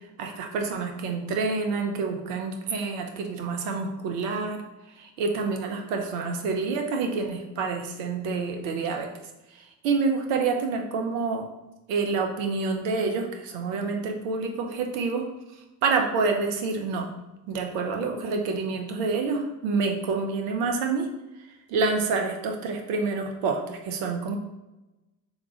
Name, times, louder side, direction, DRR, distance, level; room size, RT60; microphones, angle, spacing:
voice 1, 0.2-4.6 5.0-9.1 9.8-11.4 11.9-15.3 15.8-17.1 17.5-21.1 21.7-24.4, right 4 dB, 75° right, 3 dB, 0.9 m, -27 dB
3.6 x 3.1 x 4.8 m, 1.0 s
hypercardioid pair, 50°, 45 cm